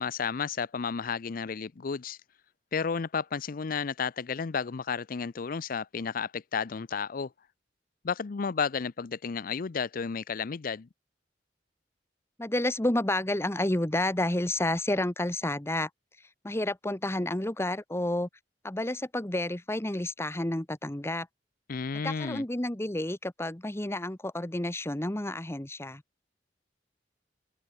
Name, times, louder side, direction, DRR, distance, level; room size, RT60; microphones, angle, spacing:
voice 1, 0.0-2.2 2.7-7.3 8.0-10.9 21.7-22.4, left 5 dB, 55° left, 0.5 m, -32 dB
voice 2, 12.4-15.9 16.4-18.3 18.6-21.3 22.0-26.0, left 1 dB, 15° left, 1.2 m, -30 dB
head